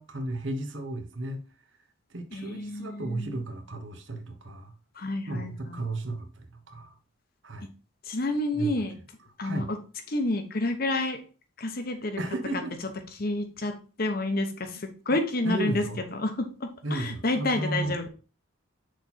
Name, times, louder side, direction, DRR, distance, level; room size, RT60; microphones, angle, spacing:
voice 1, 0.0-1.4 2.1-4.7 5.3-6.9 7.4-7.7 8.5-8.8 9.4-9.7 12.2-12.8 15.4-16.0 16.8-17.9, right 2 dB, 65° right, 6 dB, 1.0 m, -34 dB
voice 2, 2.3-3.4 5.0-5.9 7.6-7.7 8.1-8.9 9.4-9.8 10.1-11.2 11.6-12.2 13.2-15.8 16.1-18.1, left 2 dB, 45° left, 6 dB, 0.9 m, -29 dB
6.4 x 4.2 x 4.2 m, 0.36 s
head